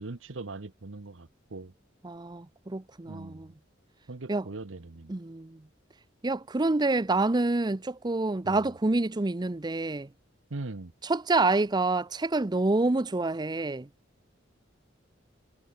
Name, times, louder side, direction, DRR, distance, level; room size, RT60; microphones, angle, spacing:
voice 1, 0.0-1.7 3.0-3.5 4.1-5.1 8.4-8.7 10.5-10.9, right 3 dB, 80° right, 1.0 m, -40 dB
voice 2, 2.0-3.5 4.3-4.4 5.1-5.6 6.2-10.1 11.1-13.9, right 2 dB, 20° right, 0.6 m, -27 dB
head